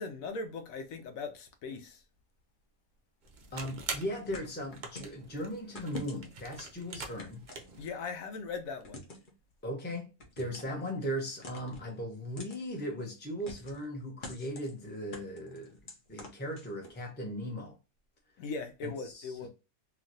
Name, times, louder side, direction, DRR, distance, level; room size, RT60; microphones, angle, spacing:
voice 1, 0.0-2.0 7.8-9.0 18.4-19.5, left 4 dB, 70° left, 0.9 m, -39 dB
sound 1, 3.2-7.9, right 4 dB, 75° right, 0.4 m, -44 dB
voice 2, 3.5-7.4 9.6-10.1 10.4-15.8 16.1-17.7 18.8-19.5, equal, 10° left, 0.6 m, -38 dB
sound 2, 4.3-5.2 5.8-6.5 7.2-8.1 8.8-9.3 10.2-10.8 11.4-11.9 12.4-12.6 13.5-13.9 14.2-14.7 15.1-17.0, left 1 dB, 45° left, 0.7 m, -46 dB
3.0 x 2.5 x 2.5 m
omnidirectional pair, 1.6 m